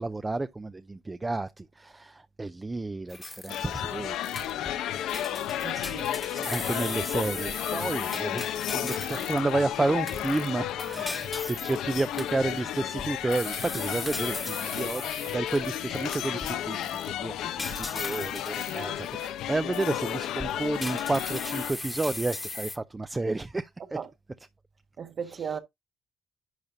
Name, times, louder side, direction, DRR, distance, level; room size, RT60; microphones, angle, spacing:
voice 1, 0.0-4.6 6.3-17.5 17.8-24.0 25.2-25.6, right 2 dB, 20° right, 0.5 m, -31 dB
sound 1, 3.1-3.9 4.2-4.8 5.1-9.5 10.1-16.5 16.8-17.1 17.6-19.3 19.7-19.9 20.4-22.8, left 2 dB, 20° left, 1.2 m, -38 dB
sound 2, 3.5-21.7, left 11 dB, 90° left, 0.8 m, -33 dB
voice 2, 5.6-6.0 24.0-24.1 25.0-25.6, right 7 dB, 50° right, 1.3 m, -35 dB
11.0 x 5.1 x 2.7 m
cardioid pair, 90°, 0 cm